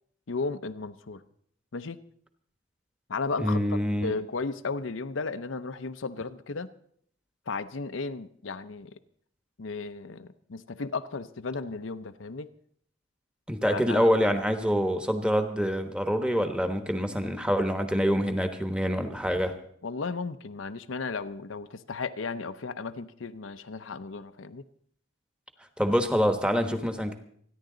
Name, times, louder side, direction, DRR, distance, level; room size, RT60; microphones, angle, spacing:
voice 1, 0.3-1.2 1.7-2.0 3.1-6.7 7.5-9.0 9.6-12.5 13.7-14.1 19.8-24.6, left 4 dB, 90° left, 10 dB, 0.7 m, -35 dB
voice 2, 3.4-4.1 13.5-19.5 25.8-27.1, equal, 5° right, 7 dB, 1.1 m, -26 dB
27.5 x 10.5 x 3.9 m, 0.64 s
head